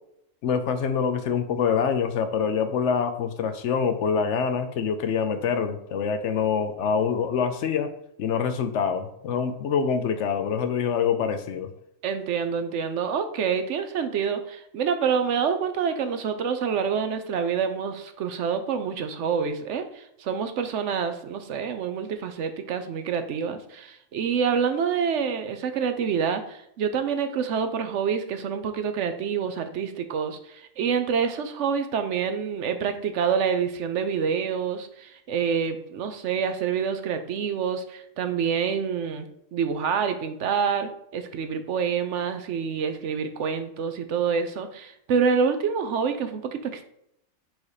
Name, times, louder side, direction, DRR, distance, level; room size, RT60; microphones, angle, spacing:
voice 1, 0.4-7.9 8.2-11.7, left 6 dB, 70° left, 9 dB, 0.8 m, -25 dB
voice 2, 12.0-46.8, right 6 dB, 70° right, 8 dB, 0.9 m, -27 dB
4.7 x 4.1 x 4.8 m, 0.76 s
omnidirectional pair, 1.4 m